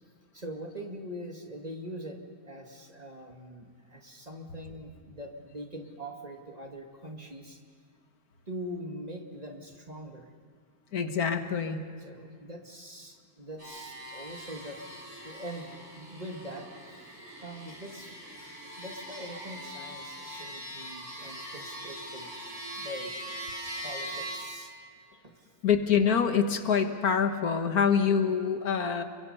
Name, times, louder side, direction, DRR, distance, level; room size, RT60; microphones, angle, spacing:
voice 1, 0.3-7.6 8.5-10.3 12.1-14.8 15.2-16.7 16.9-17.1 17.4-22.3 22.7-23.1 23.7-24.7 25.2-25.5, equal, 25° right, 2 dB, 2.2 m, -43 dB
voice 2, 10.9-11.8 25.6-29.0, left 6 dB, 80° left, 7 dB, 1.8 m, -25 dB
sound 1, 13.6-24.4, equal, 50° right, 8.1 m, -42 dB
30.0 x 23.0 x 5.6 m, 2.1 s
omnidirectional pair, 1.6 m